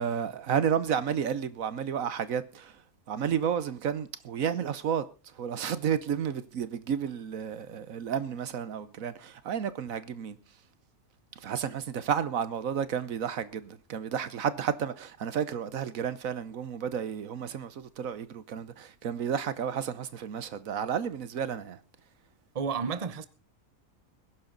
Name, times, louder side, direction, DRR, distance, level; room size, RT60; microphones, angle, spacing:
voice 1, 0.0-2.7 3.1-5.0 5.3-10.4 11.4-21.8, right 8 dB, 70° right, 1.3 m, -31 dB
voice 2, 22.5-23.3, right 6 dB, 30° right, 0.9 m, -31 dB
20.5 x 11.0 x 3.9 m
omnidirectional pair, 1.5 m